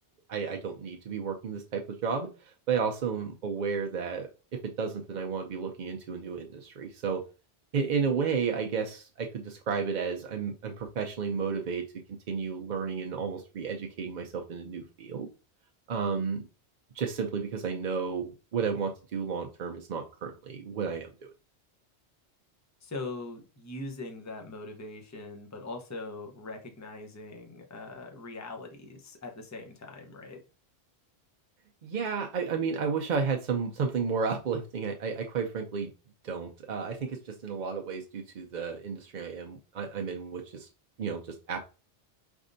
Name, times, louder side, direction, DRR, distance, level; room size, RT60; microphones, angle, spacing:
voice 1, 0.3-7.2 7.7-11.8 12.3-15.3 15.9-16.5 16.9-21.3 31.8-35.9 36.2-40.7 41.0-41.6, right 5 dB, 55° right, 2 dB, 0.6 m, -32 dB
voice 2, 22.8-30.4, left 2 dB, 15° left, 3 dB, 0.7 m, -41 dB
5.1 x 3.5 x 2.6 m, 0.32 s
omnidirectional pair, 1.2 m